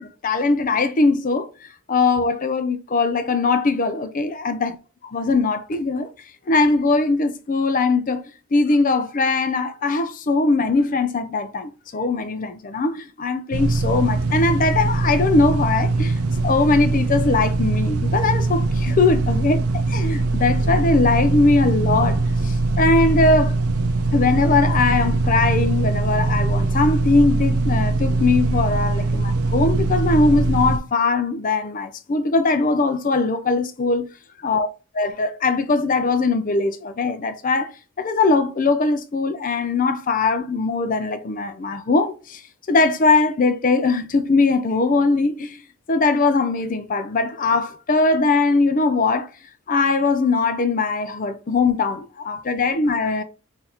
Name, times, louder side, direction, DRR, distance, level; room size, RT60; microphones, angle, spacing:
voice 1, 0.0-4.7 5.1-6.1 6.5-8.2 8.5-23.5 24.1-34.1 34.4-34.7 35.0-37.7 38.0-42.4 42.7-45.6 45.9-49.3 49.7-53.2, left 3 dB, 35° left, 0.5 m, -20 dB
sound 1, 13.5-30.8, right 3 dB, 75° right, 0.5 m, -21 dB
5.9 x 2.7 x 2.9 m
head